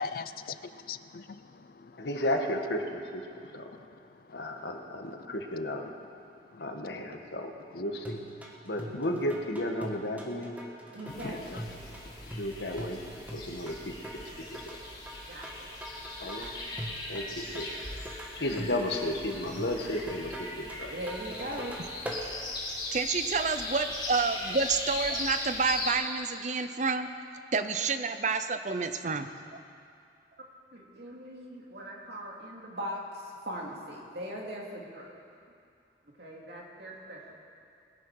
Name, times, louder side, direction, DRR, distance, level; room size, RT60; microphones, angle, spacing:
voice 1, 0.0-2.1 3.4-5.2 6.2-7.3 7.7-7.8 8.6-9.0 10.8-12.4, left 5 dB, 55° left, 13 dB, 0.5 m, -44 dB
voice 2, 2.0-3.7 4.3-5.9 6.6-8.2 8.6-10.6 11.2-11.6 12.3-13.0 13.3-14.8 16.2-16.5 17.1-17.7 18.3-20.9, left 1 dB, 80° left, 3 dB, 1.5 m, -34 dB
sound 1, 8.0-22.2, equal, 10° right, 1.4 m, -43 dB
voice 3, 10.9-11.4 15.3-15.7 20.9-21.8 30.7-35.2 36.2-37.2, equal, 70° right, -2 dB, 2.5 m, -40 dB
sound 2, 11.1-25.9, left 2 dB, 25° left, 3.9 m, -39 dB
voice 4, 22.9-27.1 27.5-29.3, right 4 dB, 45° right, 9 dB, 0.7 m, -29 dB
21.0 x 10.5 x 4.8 m, 2.4 s
head